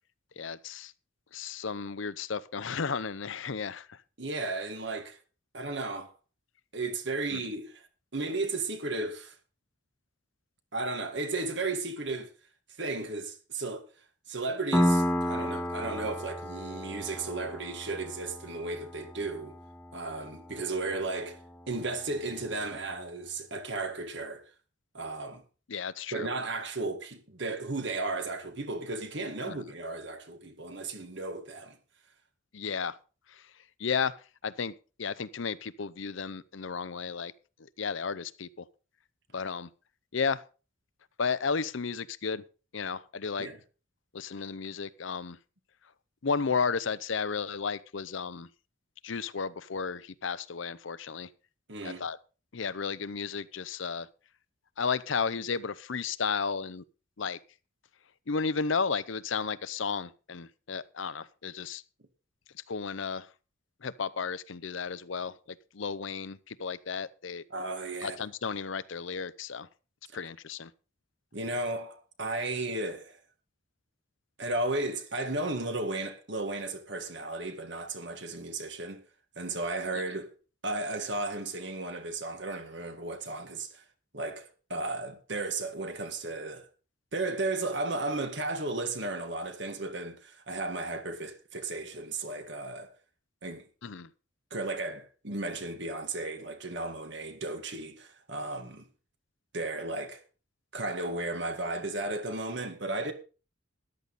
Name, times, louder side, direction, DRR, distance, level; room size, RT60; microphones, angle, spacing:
voice 1, 0.4-0.9 1.3-4.0 7.3-7.4 25.7-26.3 29.5-29.6 32.5-33.0 33.8-34.2 34.4-34.7 35.0-37.3 37.8-38.6 39.3-39.7 40.1-40.4 41.2-42.4 42.7-43.5 44.1-45.4 46.2-48.5 49.0-51.3 51.8-52.2 52.5-54.1 54.8-56.8 57.2-57.4 58.3-61.8 62.7-63.3 63.8-67.4 68.0-69.7 70.1-70.7 93.8-94.1, left 5 dB, 70° left, 0.7 m, -33 dB
voice 2, 4.2-5.2 5.5-6.1 6.7-7.8 8.1-9.4 10.7-12.3 12.8-13.8 14.3-19.6 19.9-21.4 21.7-24.4 24.9-25.4 26.1-31.8 43.4-43.6 51.7-52.1 67.5-68.2 71.3-73.2 74.4-79.0 79.4-80.3 80.6-83.8 84.1-86.7 87.1-92.9 93.4-93.6 94.5-98.9 99.5-100.2 100.7-103.1, right 2 dB, 60° right, 1.9 m, -34 dB
Piano, 14.7-22.1, equal, 10° left, 1.5 m, -33 dB
13.5 x 11.0 x 4.1 m
head